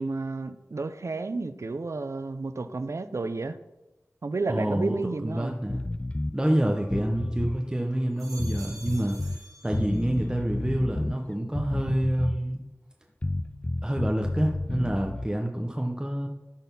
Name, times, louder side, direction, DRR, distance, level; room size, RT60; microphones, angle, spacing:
voice 1, 0.0-3.6 4.2-5.6, right 3 dB, 65° right, 12 dB, 0.5 m, -31 dB
voice 2, 4.5-5.0 5.2-5.8 6.3-9.2 9.6-12.6 13.8-16.3, right 1 dB, 15° right, 2 dB, 0.8 m, -27 dB
sound 1, 5.7-6.4 6.8-7.6 8.4-9.4 9.7-11.2 11.5-12.5 13.2-15.3, left 2 dB, 25° left, 0.3 m, -31 dB
sound 2, 6.4-7.5 8.0-10.4 10.8-11.4, right 2 dB, 85° right, 1.3 m, -50 dB
12.5 x 4.1 x 5.4 m, 1.0 s
wide cardioid pair, 65°, 5 cm